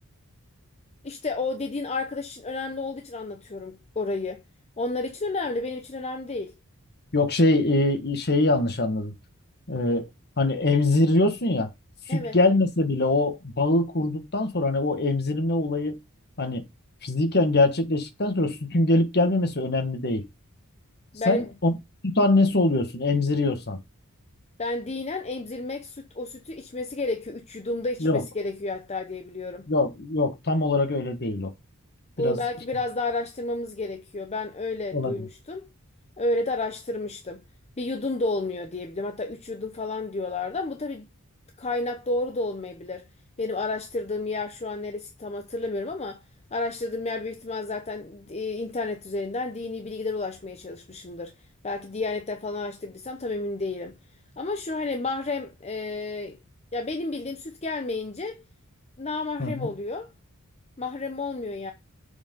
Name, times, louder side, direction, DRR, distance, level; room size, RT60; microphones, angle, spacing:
voice 1, 1.0-4.4 4.8-6.5 12.1-12.4 21.1-21.5 24.6-29.7 32.2-35.7 36.2-37.4 37.8-41.1 41.6-43.1 43.4-46.2 46.5-51.3 51.6-54.0 54.4-56.4 56.7-58.4 59.0-60.1 60.8-61.7, left 2 dB, 30° left, 0.7 m, -31 dB
voice 2, 7.1-9.1 9.7-10.1 10.4-11.7 12.1-16.0 16.4-16.6 17.0-20.2 21.2-21.8 22.0-23.8 28.0-28.2 29.7-31.5 32.2-32.4 34.9-35.3 59.4-59.7, left 2 dB, 45° left, 1.5 m, -23 dB
6.9 x 4.6 x 5.3 m
head